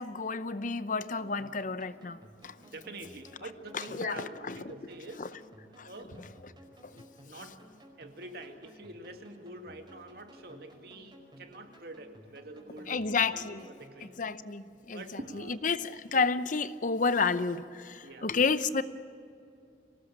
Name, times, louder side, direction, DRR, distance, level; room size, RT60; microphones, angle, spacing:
voice 1, 0.0-2.5 4.0-4.6 5.2-5.3 5.8-5.9 12.9-13.6 14.2-15.0 15.6-18.8, left 4 dB, 45° left, 13 dB, 0.8 m, -30 dB
sound 1, 1.2-14.4, equal, 25° right, 5.0 m, -55 dB
voice 2, 2.6-5.3 5.9-6.3 6.8-7.7 8.0-14.2 14.9-15.6 18.0-18.3, right 2 dB, 60° right, 5 dB, 2.3 m, -46 dB
24.5 x 19.0 x 8.6 m, 2.6 s
head